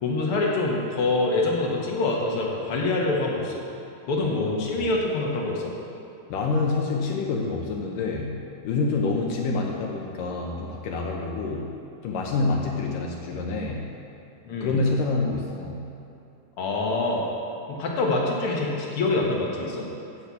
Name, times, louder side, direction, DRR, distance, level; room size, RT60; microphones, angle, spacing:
voice 1, 0.0-3.5 4.1-5.7 14.5-14.8 16.6-17.3 17.7-19.9, left 2 dB, 55° left, -2 dB, 1.7 m, -25 dB
voice 2, 4.2-4.9 6.3-11.7 12.0-13.9 14.6-15.9, left 3 dB, 75° left, 0 dB, 2.3 m, -27 dB
8.8 x 7.5 x 8.3 m, 2.8 s
omnidirectional pair, 4.2 m